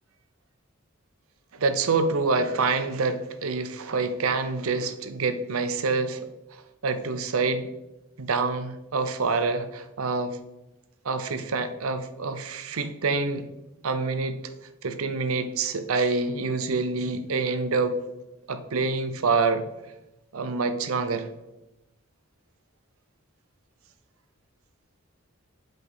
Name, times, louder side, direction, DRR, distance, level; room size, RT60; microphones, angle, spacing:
voice 1, 1.5-6.3 6.8-7.7 8.2-10.4 11.0-13.5 13.8-14.4 14.8-18.0 18.5-19.6 20.3-21.3, right 4 dB, 90° right, 10 dB, 0.7 m, -26 dB
8.0 x 5.2 x 3.9 m, 0.93 s
head